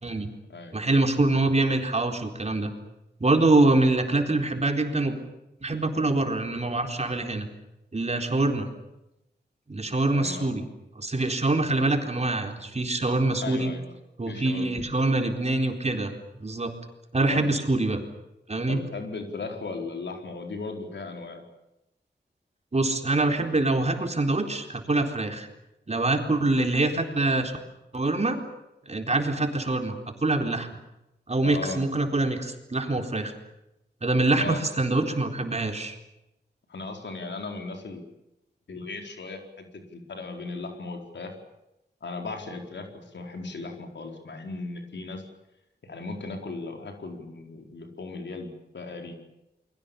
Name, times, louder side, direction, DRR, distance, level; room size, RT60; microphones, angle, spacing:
voice 1, 0.7-2.7 3.2-5.2 5.6-7.5 7.9-8.7 9.7-10.6 11.0-13.7 14.2-16.1 16.4-16.7 17.1-18.0 18.5-18.8 22.7-25.5 25.9-27.6 27.9-28.4 28.9-30.7 31.3-33.3 34.0-36.0, right 2 dB, 35° right, 4 dB, 4.2 m, -25 dB
voice 2, 10.1-10.6 13.4-13.9 14.3-14.8 17.3-17.4 18.7-21.4 31.4-31.8 34.4-34.6 36.7-38.0 38.7-39.6 39.9-41.4 42.0-45.2 45.8-49.1, left 3 dB, 80° left, 3 dB, 4.5 m, -37 dB
29.5 x 22.5 x 7.1 m, 0.90 s
wide cardioid pair, 70°, 18 cm